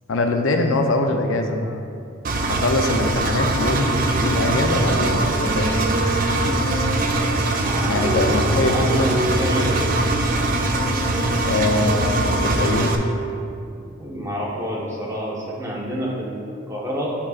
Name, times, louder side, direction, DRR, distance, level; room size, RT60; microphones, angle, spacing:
voice 1, 0.1-1.8 2.5-6.1 7.8-8.7 11.4-13.0, left 2 dB, 75° left, 4 dB, 0.5 m, -23 dB
Engine, 2.2-13.0, right 2 dB, 40° right, 0.5 m, -22 dB
Wind instrument woodwind instrument, 4.7-13.4, right 1 dB, 60° right, 1.2 m, -30 dB
voice 2, 7.6-8.2 8.6-10.0 14.0-17.2, equal, 15° right, -6 dB, 1.1 m, -28 dB
8.5 x 5.7 x 2.4 m, 2.4 s
head